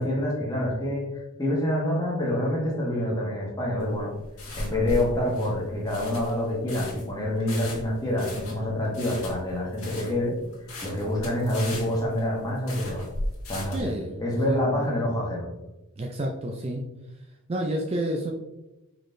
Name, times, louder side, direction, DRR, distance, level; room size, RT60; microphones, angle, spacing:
voice 1, 0.0-4.1 4.5-10.4 10.8-13.1 13.5-13.9 14.2-15.5, left 1 dB, 15° left, -3 dB, 1.1 m, -27 dB
sound 1, 3.8-13.9, left 1 dB, 85° left, 1.5 m, -37 dB
voice 2, 13.7-14.6 16.0-16.8 17.5-18.3, right 1 dB, 25° right, 1 dB, 0.4 m, -30 dB
4.9 x 3.9 x 2.6 m, 1.0 s
head